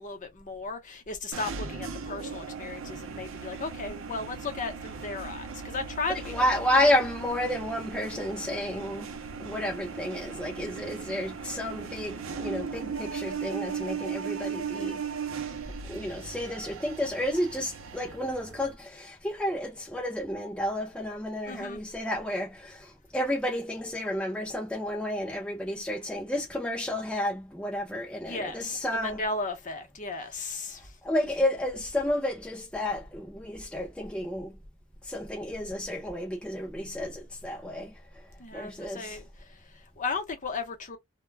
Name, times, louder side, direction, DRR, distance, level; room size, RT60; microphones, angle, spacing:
voice 1, 0.0-6.8 21.4-21.8 28.2-30.9 38.4-41.0, left 3 dB, 40° left, 0.8 m, -36 dB
sound 1, 1.3-18.7, right 5 dB, 75° right, 0.5 m, -38 dB
voice 2, 6.3-9.1 9.4-15.1 15.8-29.2 31.0-34.6 35.0-38.2 38.5-39.2, left 1 dB, 5° left, 0.4 m, -31 dB
2.2 x 2.1 x 3.2 m
head